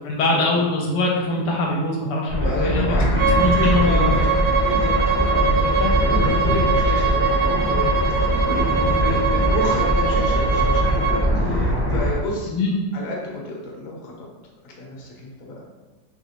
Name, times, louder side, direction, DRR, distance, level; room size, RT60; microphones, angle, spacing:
voice 1, 0.0-4.2 5.3-5.9 12.5-12.8, left 2 dB, 80° left, -2 dB, 1.2 m, -23 dB
sound 1, 2.3-12.1, equal, 10° right, 0.6 m, -22 dB
voice 2, 2.4-3.3 3.6-4.3 4.6-12.5 12.9-14.3 14.6-15.6, left 1 dB, 60° left, -2 dB, 1.0 m, -31 dB
Bowed string instrument, 3.2-11.2, right 4 dB, 70° right, 1.0 m, -22 dB
3.2 x 2.8 x 2.8 m, 1.2 s
omnidirectional pair, 1.9 m